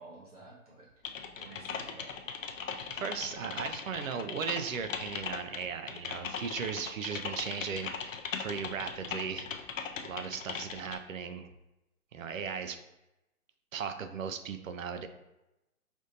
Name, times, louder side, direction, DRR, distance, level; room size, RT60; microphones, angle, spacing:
voice 1, 0.0-2.2, right 2 dB, 25° right, -6 dB, 1.1 m, -52 dB
Typing, 1.0-11.0, left 6 dB, 65° left, 0.5 m, -39 dB
voice 2, 2.9-9.5 10.0-11.5 12.1-12.8 13.7-15.1, right 6 dB, 70° right, 9 dB, 0.5 m, -37 dB
5.1 x 2.6 x 2.7 m, 0.94 s
hypercardioid pair, 175°, 43 cm